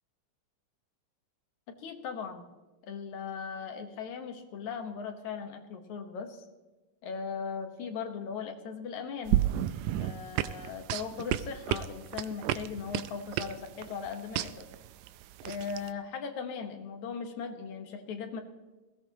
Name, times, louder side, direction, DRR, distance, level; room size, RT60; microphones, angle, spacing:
voice 1, 1.7-2.5 2.9-6.5 7.0-9.4 10.0-14.7 15.4-18.4, left 6 dB, 65° left, 6 dB, 2.5 m, -38 dB
sound 1, 9.3-15.9, right 13 dB, 85° right, 1.6 m, -32 dB
20.0 x 16.0 x 3.0 m, 1.2 s
omnidirectional pair, 3.8 m